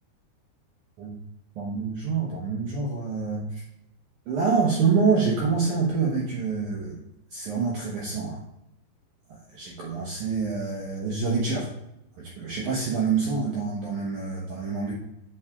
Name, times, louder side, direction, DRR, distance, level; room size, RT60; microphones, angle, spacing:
voice 1, 1.6-3.6 4.3-7.0 7.3-8.4 9.5-11.7 12.2-14.9, right 5 dB, 75° right, -4 dB, 1.8 m, -26 dB
8.8 x 5.8 x 2.3 m, 0.83 s
omnidirectional pair, 4.8 m